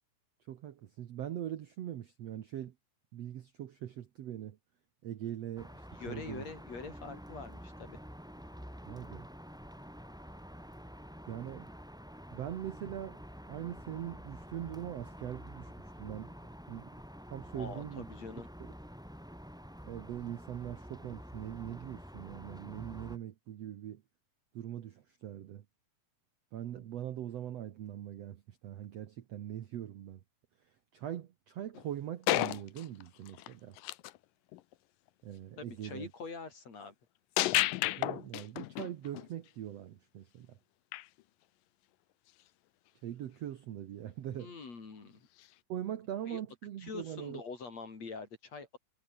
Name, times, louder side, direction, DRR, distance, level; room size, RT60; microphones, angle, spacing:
voice 1, 0.5-2.7 3.1-4.6 5.0-6.5 8.8-9.3 11.3-11.7 12.3-13.2 13.5-15.7 16.0-16.3 16.7-16.9 17.3-18.1 18.6-18.7 19.8-24.0 24.5-25.6 26.5-30.2 30.9-33.8 35.2-36.1 37.5-37.6 38.0-40.6 43.0-44.5 45.7-47.4, right 11 dB, 60° right, 1.8 m, -42 dB
sound 1, 5.6-23.2, equal, ahead, 4.4 m, -49 dB
voice 2, 5.9-8.0 17.6-18.5 35.6-36.9 44.3-45.3 46.3-46.4 46.8-48.7, left 4 dB, 45° left, 5.5 m, -44 dB
sound 2, 31.8-31.9 32.3-34.2 34.5-34.7 37.4-39.3 40.9-41.1 45.4-45.5, left 17 dB, 75° left, 2.4 m, -32 dB
omnidirectional pair, 4.2 m